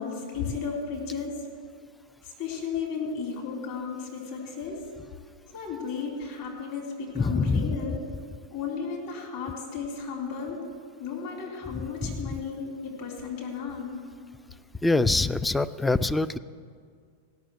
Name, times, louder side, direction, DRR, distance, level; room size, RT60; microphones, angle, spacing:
voice 1, 0.0-1.5 2.2-4.9 5.5-8.0 8.5-10.6 11.0-13.9, left 5 dB, 50° left, -1 dB, 3.6 m, -34 dB
voice 2, 7.1-7.8 12.0-12.2 14.8-16.4, left 3 dB, 5° left, 14 dB, 0.3 m, -24 dB
16.5 x 6.2 x 7.9 m, 2.1 s
figure-of-eight pair, 90°, 0 cm